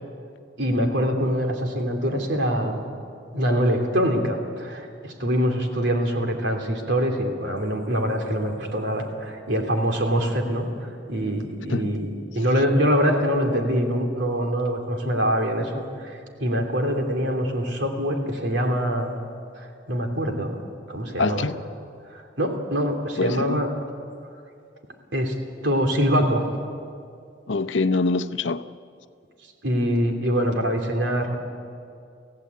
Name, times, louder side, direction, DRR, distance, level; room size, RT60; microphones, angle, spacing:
voice 1, 0.6-2.8 3.3-19.1 19.6-20.6 20.9-21.5 22.1-23.7 25.1-25.4 25.6-26.5 29.6-31.4, equal, 75° right, 3.0 m, -24 dB
voice 2, 21.2-21.6 23.2-23.7 27.5-28.6, left 3 dB, 80° left, 0.7 m, -24 dB
25.5 x 16.5 x 8.4 m
head